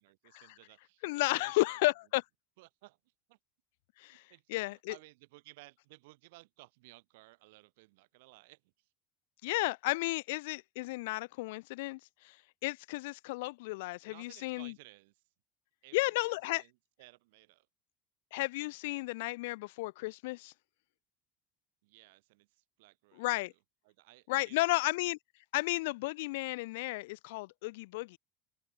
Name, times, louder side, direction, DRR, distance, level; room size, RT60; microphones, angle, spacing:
voice 1, 0.0-1.0 1.3-1.8 2.6-3.4 4.1-8.9 14.1-15.2 15.8-17.7 21.8-23.6 23.8-25.1, right 22 dB, 80° right, 2.6 m, -58 dB
voice 2, 1.0-2.2 4.0-4.2 4.5-4.9 9.4-12.4 12.6-14.7 15.9-16.6 18.3-20.5 23.2-23.5 24.3-25.2 25.5-28.2, left 22 dB, 80° left, 0.4 m, -33 dB
open air
supercardioid pair, 105°, 0 cm